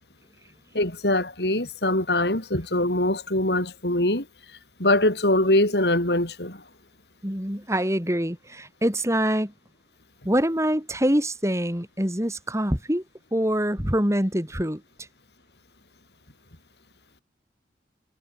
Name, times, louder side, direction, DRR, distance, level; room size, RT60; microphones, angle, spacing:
voice 1, 0.7-4.3 4.8-6.6, left 1 dB, 65° left, 5.5 m, -23 dB
voice 2, 7.2-9.5 10.2-13.0 13.3-14.8, equal, 15° right, 5.1 m, -25 dB
head